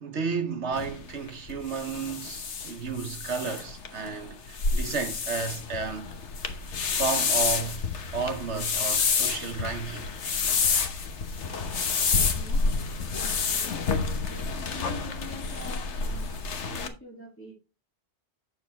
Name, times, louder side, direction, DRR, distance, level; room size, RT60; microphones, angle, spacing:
voice 1, 0.0-6.2 6.9-7.8 8.1-10.1, right 5 dB, 85° right, 1.4 m, -32 dB
sound 1, 0.7-16.9, left 5 dB, 85° left, 1.4 m, -29 dB
voice 2, 13.2-17.5, equal, 10° left, 2.7 m, -45 dB
9.0 x 7.1 x 3.5 m
omnidirectional pair, 1.1 m